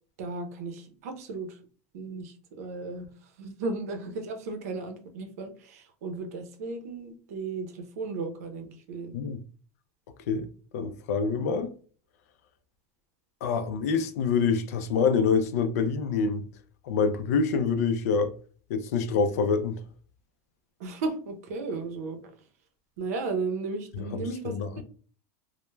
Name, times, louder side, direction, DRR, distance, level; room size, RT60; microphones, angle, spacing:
voice 1, 0.2-1.6 1.9-3.1 3.4-9.1 20.8-22.3 23.0-24.5, right 3 dB, 90° right, 0.6 m, -35 dB
voice 2, 10.7-11.7 13.4-16.5 16.9-18.3 18.7-19.8 24.1-24.8, left 5 dB, 90° left, 0.4 m, -26 dB
2.2 x 2.1 x 3.1 m
supercardioid pair, 135°, 8 cm